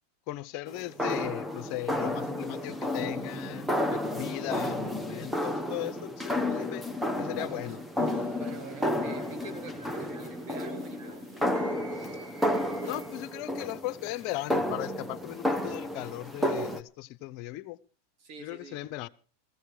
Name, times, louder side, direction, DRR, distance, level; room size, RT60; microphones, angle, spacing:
voice 1, 0.3-6.9 7.2-7.8 12.8-17.8 18.4-19.1, left 16 dB, 50° left, 0.7 m, -37 dB
sound 1, 0.7-16.8, left 1 dB, 5° right, 1.1 m, -32 dB
voice 2, 7.4-7.8 8.4-11.3 18.2-18.8, right 3 dB, 55° right, 3.1 m, -46 dB
sound 2, 8.0-13.4, right 3 dB, 85° right, 7.1 m, -52 dB
16.0 x 15.5 x 4.8 m
supercardioid pair, 125°, 0 cm